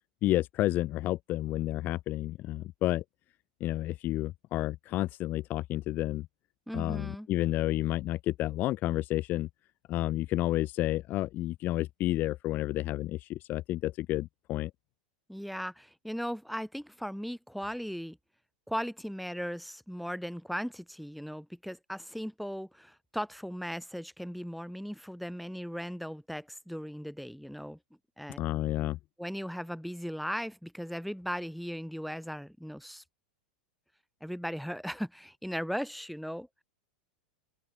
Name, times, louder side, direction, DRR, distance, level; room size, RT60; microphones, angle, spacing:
voice 1, 0.2-3.0 3.6-6.3 6.7-9.5 9.9-14.7 28.4-29.0, left 16 dB, 40° left, 0.8 m, -30 dB
voice 2, 6.7-7.3 15.3-18.2 18.7-27.8 28.2-28.4 29.2-33.0 34.2-36.6, equal, ahead, 5.2 m, -37 dB
hypercardioid pair, 95°, 5 cm